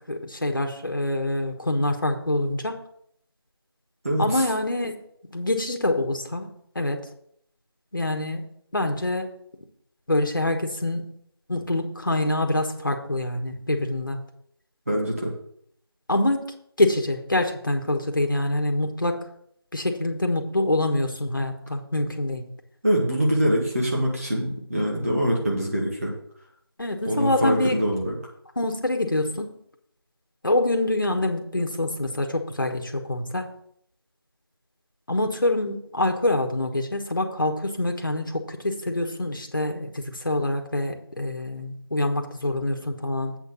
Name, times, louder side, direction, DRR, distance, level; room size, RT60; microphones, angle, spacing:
voice 1, 0.1-2.8 4.2-5.0 5.3-7.0 7.9-9.4 10.1-11.1 11.5-14.2 16.1-16.5 16.8-19.3 19.7-22.4 26.8-27.8 28.6-29.5 30.4-33.6 35.1-43.4, left 1 dB, 50° left, 4 dB, 1.4 m, -25 dB
voice 2, 4.0-4.4 14.9-15.3 22.8-26.1 27.0-28.1, equal, 35° right, -2 dB, 1.6 m, -24 dB
8.1 x 4.5 x 6.9 m, 0.67 s
figure-of-eight pair, 175°, 14 cm